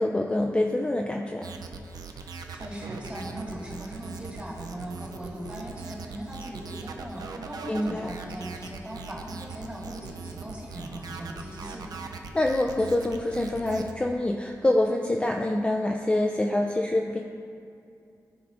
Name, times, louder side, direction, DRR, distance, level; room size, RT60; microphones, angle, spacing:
voice 1, 0.0-1.5 7.7-8.1 12.3-17.2, left 1 dB, 15° left, 1 dB, 0.3 m, -26 dB
sound 1, 1.4-13.9, right 4 dB, 80° right, 0.4 m, -41 dB
voice 2, 2.1-11.9, right 1 dB, 20° right, -4 dB, 1.7 m, -39 dB
12.5 x 4.7 x 2.5 m, 2.5 s
wide cardioid pair, 95°, 7 cm